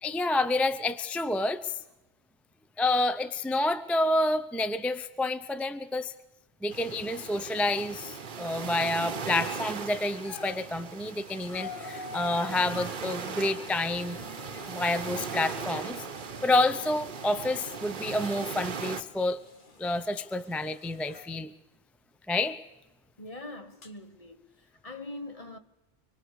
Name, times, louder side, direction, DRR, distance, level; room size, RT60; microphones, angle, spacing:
voice 1, 0.0-1.8 2.8-6.1 6.6-14.2 14.7-16.1 16.4-19.4 19.8-21.5 22.3-22.6, left 2 dB, ahead, 0.4 m, -29 dB
sound 1, 6.7-19.0, right 6 dB, 55° right, 1.0 m, -38 dB
sound 2, 9.1-9.6 10.1-21.3 22.5-22.6 23.8-23.9, left 4 dB, 55° left, 1.5 m, -47 dB
voice 2, 23.2-25.6, left 2 dB, 35° left, 1.2 m, -43 dB
25.0 x 24.5 x 4.8 m
omnidirectional pair, 1.0 m